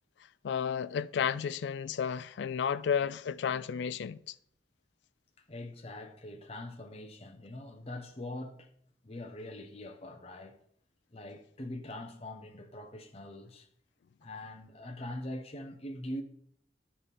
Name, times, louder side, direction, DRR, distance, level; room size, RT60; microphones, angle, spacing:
voice 1, 0.4-4.3, left 7 dB, 70° left, 0.3 m, -32 dB
voice 2, 5.5-8.7 9.0-10.6 11.1-13.7 14.2-16.2, left 1 dB, 35° left, 0.8 m, -43 dB
9.9 x 3.3 x 5.3 m
head